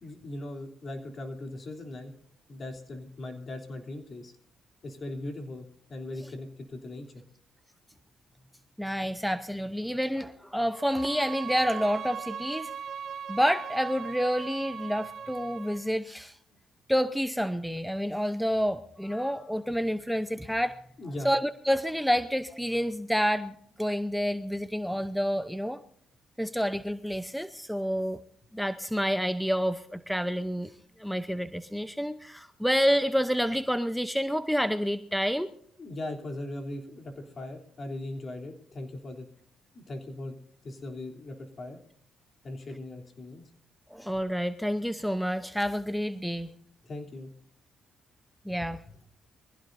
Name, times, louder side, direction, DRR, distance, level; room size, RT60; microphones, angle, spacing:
voice 1, 0.0-2.1 2.5-4.3 4.8-7.1 21.0-21.3 35.8-39.3 39.7-40.4 40.6-41.8 42.4-43.5 46.8-47.3 48.6-48.7, left 1 dB, 40° left, 3.3 m, -39 dB
voice 2, 8.8-12.7 13.3-16.4 16.9-20.8 21.2-25.8 26.4-28.2 28.5-30.7 31.0-35.5 43.9-46.5 48.5-48.8, equal, ahead, 0.7 m, -28 dB
Bowed string instrument, 10.7-15.9, right 7 dB, 65° right, 1.8 m, -39 dB
23.5 x 15.5 x 2.7 m
cardioid pair, 90°, 0 cm